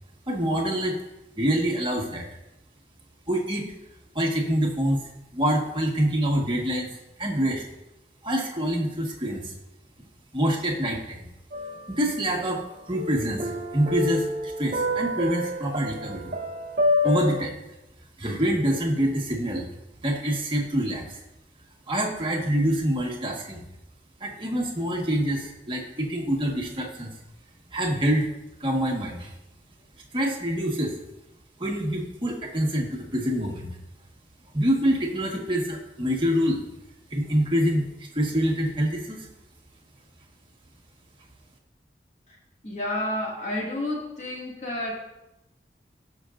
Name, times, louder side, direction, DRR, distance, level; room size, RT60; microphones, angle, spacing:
voice 1, 0.3-1.0 1.4-2.3 3.3-3.7 4.1-5.0 5.3-6.9 7.2-7.6 8.2-9.5 10.3-11.2 11.9-16.3 17.0-17.6 18.2-19.7 20.0-21.2 21.9-23.6 24.2-27.1 27.7-28.3 28.6-29.3 30.1-30.9 31.6-33.8 34.5-36.6 37.1-37.9 38.1-39.3, equal, 25° right, -1 dB, 1.5 m, -26 dB
sound 1, 11.5-12.6 12.9-17.4, left 2 dB, 45° right, 0.9 m, -28 dB
voice 2, 42.6-45.0, left 1 dB, 40° left, -3 dB, 2.1 m, -30 dB
17.5 x 6.0 x 2.5 m, 0.92 s
head